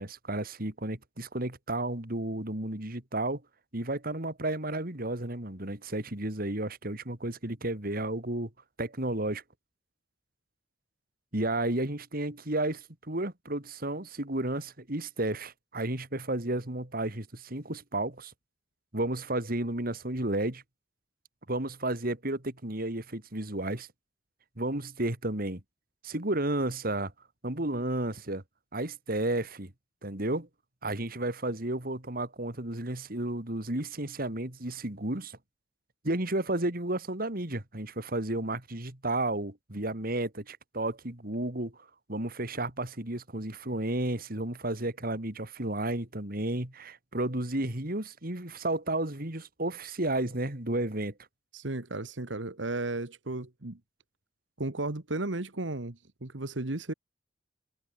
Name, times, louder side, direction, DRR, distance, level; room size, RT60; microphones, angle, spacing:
voice 1, 0.0-3.4 3.7-8.5 8.8-9.4 11.3-18.3 18.9-20.6 21.5-23.9 24.6-25.6 26.0-27.1 27.4-28.4 28.7-29.7 30.0-30.5 30.8-35.4 36.0-41.8 42.1-51.1, right 1 dB, 50° right, 3.3 m, -32 dB
voice 2, 51.5-53.8 54.6-56.9, right 2 dB, 90° right, 1.8 m, -34 dB
head